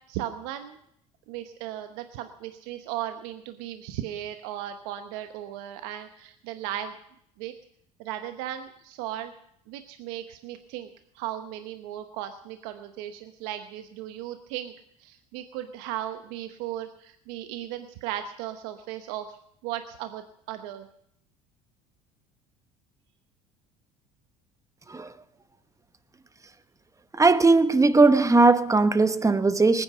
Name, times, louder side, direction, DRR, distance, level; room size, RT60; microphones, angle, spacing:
voice 1, 0.1-0.8 1.3-7.0 7.4-7.5 8.0-9.3 9.7-10.9 11.1-14.7 15.0-19.4 19.6-20.9, right 12 dB, 75° right, 1.0 m, -36 dB
voice 2, 27.2-29.8, right 3 dB, 15° right, 1.1 m, -19 dB
20.0 x 9.6 x 6.6 m
hypercardioid pair, 70°, 18 cm